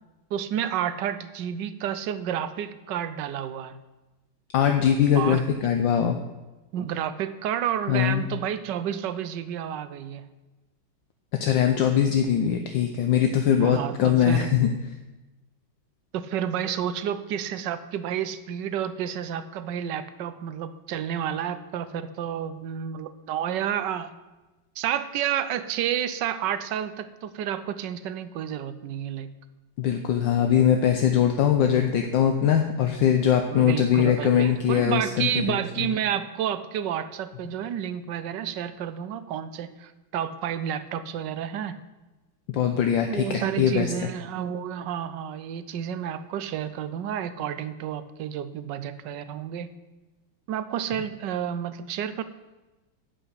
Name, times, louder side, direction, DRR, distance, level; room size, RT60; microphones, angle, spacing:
voice 1, 0.3-3.7 5.1-5.4 6.7-10.2 13.6-14.5 16.1-24.1 24.8-29.3 33.5-41.8 43.1-49.7 50.5-52.2, right 9 dB, 70° right, 12 dB, 1.2 m, -30 dB
voice 2, 4.5-6.2 7.9-8.2 11.4-14.7 29.8-35.9 42.5-43.9, left 9 dB, 70° left, 5 dB, 1.4 m, -22 dB
11.5 x 5.7 x 8.3 m, 1.1 s
omnidirectional pair, 2.2 m